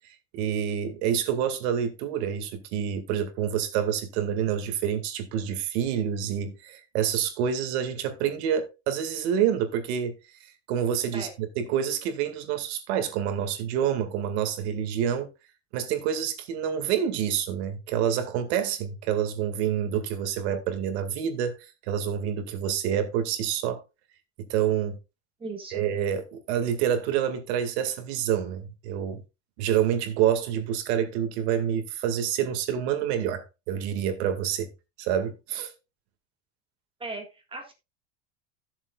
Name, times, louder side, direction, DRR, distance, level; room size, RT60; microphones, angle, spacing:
voice 1, 0.3-10.1 10.7-11.3 11.6-15.3 15.7-21.6 21.9-23.8 24.4-25.0 25.7-29.2 29.6-34.7 35.0-35.7, right 9 dB, 75° right, 2.1 m, -27 dB
voice 2, 25.4-25.8 37.0-37.7, right 3 dB, 15° right, 1.8 m, -37 dB
15.5 x 7.2 x 2.4 m
cardioid pair, 145°, 33 cm